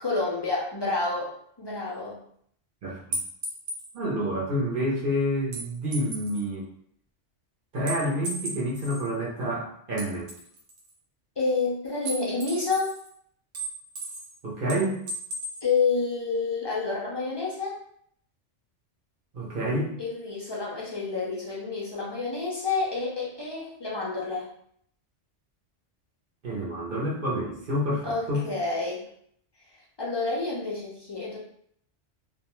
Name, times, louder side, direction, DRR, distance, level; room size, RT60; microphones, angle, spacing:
voice 1, 0.0-1.3 1.6-2.2 11.4-12.9 15.6-17.7 20.0-24.5 28.0-29.0 30.0-31.4, left 4 dB, 40° left, -5 dB, 0.3 m, -29 dB
sound 1, 3.1-3.9 5.5-6.4 7.9-9.1 10.0-10.9 12.0-13.1 13.5-14.3 14.7-15.6, right 2 dB, 85° right, 1.1 m, -35 dB
voice 2, 3.9-6.7 7.7-10.3 14.4-15.0 19.3-19.9 26.4-28.4, equal, 50° right, -4 dB, 0.8 m, -28 dB
2.4 x 2.2 x 2.9 m, 0.66 s
omnidirectional pair, 1.2 m